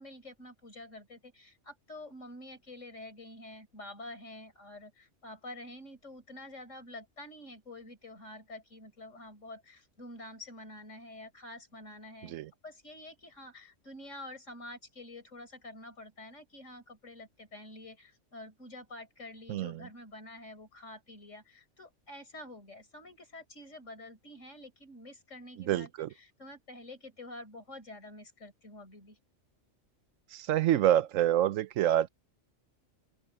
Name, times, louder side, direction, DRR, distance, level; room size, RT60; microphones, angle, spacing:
voice 1, 0.0-12.3 12.6-29.2, left 1 dB, 75° left, 5.5 m, -48 dB
voice 2, 19.5-19.8 25.7-26.1 30.3-32.1, right 12 dB, 90° right, 1.0 m, -27 dB
open air
omnidirectional pair, 1.3 m